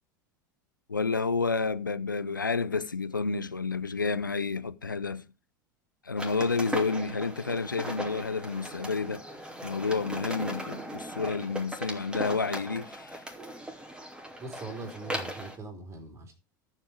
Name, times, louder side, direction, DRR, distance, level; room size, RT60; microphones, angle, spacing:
voice 1, 0.9-5.2 6.0-9.2 9.6-13.2, left 4 dB, 85° left, 0.7 m, -30 dB
sound 1, 6.2-15.6, right 1 dB, 10° right, 2.8 m, -38 dB
voice 2, 14.4-16.3, right 3 dB, 25° right, 3.4 m, -41 dB
13.5 x 7.6 x 4.7 m
figure-of-eight pair, 80°, 10 cm